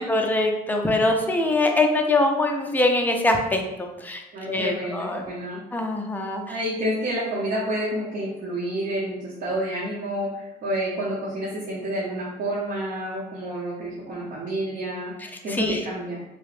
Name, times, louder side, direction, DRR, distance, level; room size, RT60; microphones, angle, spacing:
voice 1, 0.0-4.2 4.5-5.2 5.7-6.6 15.5-15.8, left 2 dB, 10° left, 2 dB, 0.4 m, -23 dB
voice 2, 4.3-5.6 6.5-15.1 15.4-16.2, right 1 dB, 50° right, -7 dB, 0.8 m, -29 dB
2.8 x 2.0 x 3.1 m, 0.98 s
cardioid pair, 110°, 17 cm